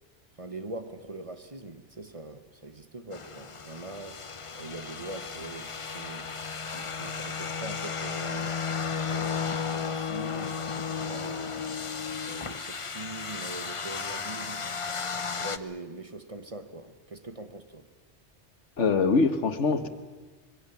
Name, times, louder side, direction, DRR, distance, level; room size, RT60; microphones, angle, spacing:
voice 1, 0.4-6.3 6.6-8.6 9.1-11.7 12.2-14.7 15.3-17.9, right 2 dB, 30° right, 1.2 m, -42 dB
sound 1, 3.1-15.6, left 6 dB, 30° left, 0.8 m, -34 dB
voice 2, 18.8-19.9, left 4 dB, 80° left, 1.8 m, -23 dB
26.0 x 22.0 x 7.2 m
omnidirectional pair, 1.2 m